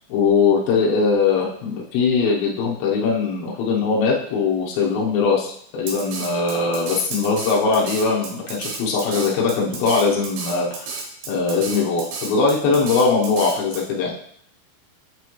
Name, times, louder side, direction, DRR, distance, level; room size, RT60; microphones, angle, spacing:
voice 1, 0.1-11.0 11.3-14.1, left 4 dB, 75° left, -4 dB, 2.5 m, -21 dB
Drum kit, 5.9-13.8, right 4 dB, 75° right, 3.3 m, -32 dB
8.4 x 4.0 x 3.0 m, 0.66 s
omnidirectional pair, 5.0 m